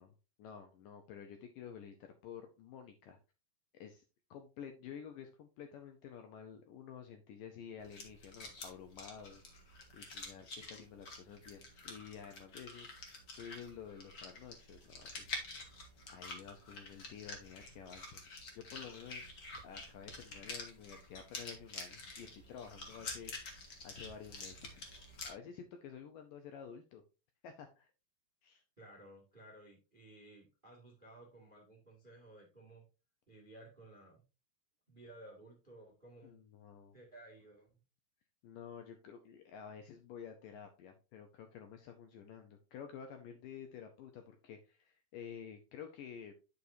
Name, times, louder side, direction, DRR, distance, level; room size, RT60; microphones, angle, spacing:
voice 1, 0.0-3.2 3.7-4.0 4.3-18.3 18.5-23.6 23.8-24.8 25.2-27.0 27.4-27.9 28.4-28.6 36.2-37.0 38.4-46.3, left 7 dB, 75° left, 6 dB, 2.1 m, -51 dB
sound 1, 7.8-25.3, left 3 dB, 50° left, 1.3 m, -48 dB
voice 2, 28.8-32.8 33.3-34.2 34.9-36.3 36.9-37.8, right 1 dB, 20° right, 0 dB, 1.2 m, -56 dB
9.8 x 6.5 x 2.7 m, 0.30 s
omnidirectional pair, 4.7 m